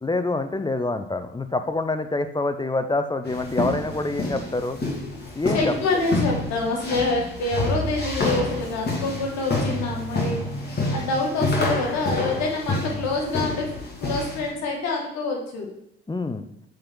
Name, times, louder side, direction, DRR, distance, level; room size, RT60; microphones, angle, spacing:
voice 1, 0.0-4.8 5.3-5.7 16.1-16.5, left 2 dB, 15° left, 9 dB, 0.7 m, -26 dB
sound 1, 3.2-14.5, left 2 dB, 35° left, 2.4 m, -28 dB
voice 2, 5.5-13.7 14.0-15.7, left 3 dB, 65° left, 0 dB, 2.1 m, -26 dB
7.7 x 4.4 x 3.9 m, 0.76 s
hypercardioid pair, 60°, 29 cm